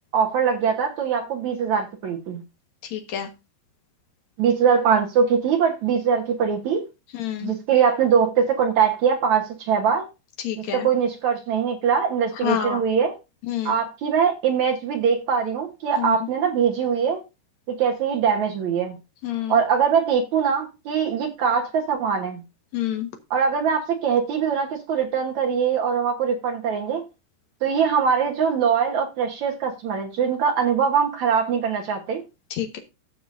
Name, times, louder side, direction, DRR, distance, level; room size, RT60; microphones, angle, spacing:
voice 1, 0.1-2.4 4.4-6.8 7.4-10.1 10.6-13.1 13.7-17.2 17.7-19.0 19.5-22.4 23.3-27.0 27.6-32.2, right 7 dB, 70° right, 1.7 m, -22 dB
voice 2, 2.9-3.3 7.1-7.5 10.4-10.9 12.4-12.8 13.5-13.8 16.0-16.2 19.2-19.6 22.7-23.1 32.5-32.8, left 11 dB, 60° left, 1.9 m, -28 dB
15.5 x 6.8 x 2.6 m
omnidirectional pair, 5.1 m